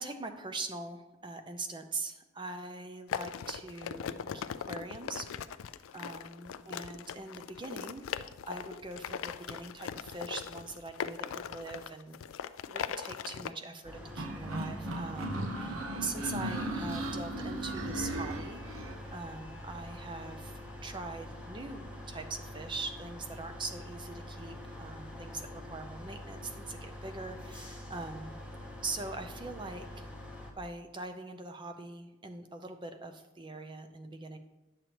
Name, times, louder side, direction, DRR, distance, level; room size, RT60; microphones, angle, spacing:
voice 1, 0.0-5.3 5.9-8.1 8.4-12.2 12.7-28.4 28.8-30.0 30.6-34.4, right 3 dB, 20° right, 6 dB, 0.5 m, -42 dB
sound 1, 3.1-13.5, left 8 dB, 70° left, 0.3 m, -40 dB
sound 2, 13.8-30.5, left 1 dB, 5° right, 0.9 m, -45 dB
sound 3, 14.2-19.0, right 1 dB, 80° right, 0.8 m, -36 dB
10.0 x 6.7 x 3.0 m, 1.0 s
head